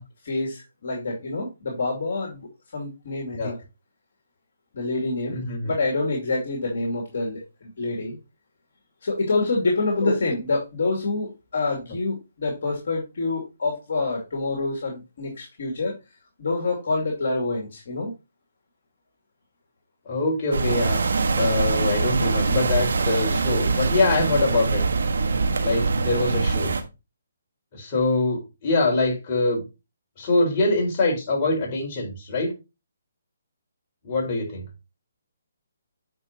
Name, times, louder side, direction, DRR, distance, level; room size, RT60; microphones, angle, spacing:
voice 1, 0.2-3.6 4.7-8.2 9.0-15.9 16.4-18.1, left 3 dB, 60° left, 0 dB, 2.5 m, -27 dB
voice 2, 5.3-5.7 10.0-10.1 20.1-21.1 21.3-24.8 25.6-26.7 27.7-29.6 30.2-32.5 34.0-34.6, left 2 dB, 35° left, -2 dB, 4.2 m, -24 dB
sound 1, 20.5-26.8, right 4 dB, 70° right, 1.3 m, -23 dB
9.5 x 5.3 x 2.8 m, 0.26 s
hypercardioid pair, 145°, 0 cm